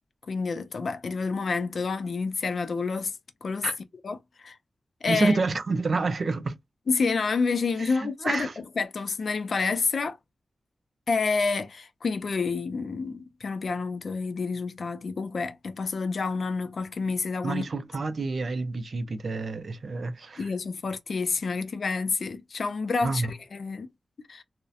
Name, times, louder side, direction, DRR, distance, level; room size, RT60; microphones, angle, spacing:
voice 1, 0.3-3.7 4.0-4.6 5.0-5.4 6.9-10.2 11.1-17.6 20.4-23.9 24.3-24.4, left 4 dB, 55° left, 0.4 m, -29 dB
voice 2, 5.1-6.6 7.8-8.5 17.4-20.5 23.0-23.3, right 3 dB, 50° right, 0.4 m, -28 dB
2.6 x 2.0 x 2.3 m
wide cardioid pair, 170°, 0 cm